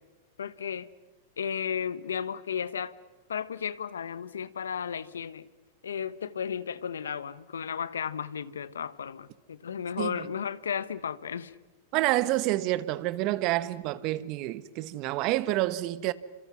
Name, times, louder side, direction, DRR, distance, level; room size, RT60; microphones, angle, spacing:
voice 1, 0.4-0.9 1.4-2.9 3.3-5.4 5.8-11.5, left 7 dB, 80° left, 1.0 m, -34 dB
voice 2, 11.9-16.1, right 16 dB, 50° right, 1.1 m, -28 dB
29.0 x 26.5 x 6.2 m
hypercardioid pair, 100°, 0 cm